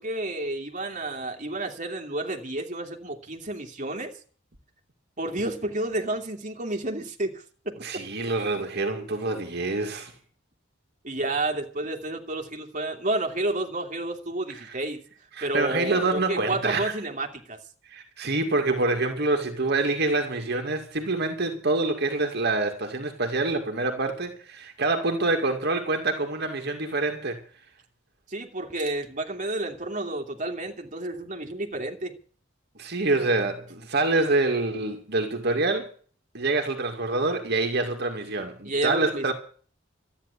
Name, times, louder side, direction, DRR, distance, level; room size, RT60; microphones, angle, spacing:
voice 1, 0.0-4.1 5.2-7.8 11.0-15.0 15.4-17.6 28.3-32.2 38.6-39.3, right 2 dB, 40° right, 2.7 m, -30 dB
voice 2, 7.8-10.1 14.5-14.8 15.3-17.0 17.8-27.4 32.8-35.9 36.3-39.3, right 3 dB, 55° right, 2.3 m, -26 dB
13.5 x 10.0 x 8.3 m
head